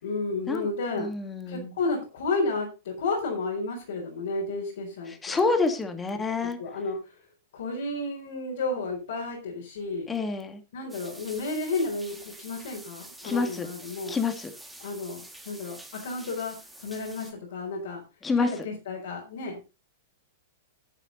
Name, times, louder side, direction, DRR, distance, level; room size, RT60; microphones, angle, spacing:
voice 1, 0.0-1.1 1.5-5.4 6.6-7.1 7.5-10.1 10.7-14.2 14.8-18.0 18.4-19.7, left 3 dB, 65° left, -2 dB, 4.4 m, -32 dB
voice 2, 1.0-1.7 5.2-6.6 10.1-10.6 13.2-13.7 14.1-14.5 18.2-18.5, left 4 dB, 15° left, 6 dB, 2.3 m, -27 dB
sound 1, 10.9-17.3, right 1 dB, 5° right, 2.5 m, -47 dB
11.5 x 8.9 x 4.0 m, 0.30 s
figure-of-eight pair, 100°, 0 cm